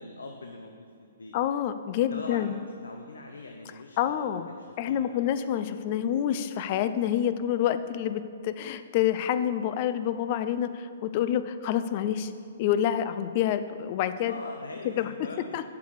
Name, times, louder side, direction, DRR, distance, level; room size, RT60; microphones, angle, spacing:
voice 1, 0.0-1.4 2.1-5.2 8.5-8.6 14.2-15.7, left 3 dB, 90° left, 3 dB, 0.6 m, -43 dB
voice 2, 1.3-2.5 4.0-4.5 4.8-12.3 12.6-14.3 14.8-15.1 15.5-15.7, left 10 dB, 45° left, 11 dB, 0.4 m, -27 dB
6.9 x 4.7 x 6.5 m, 2.3 s
hypercardioid pair, 135°, 0 cm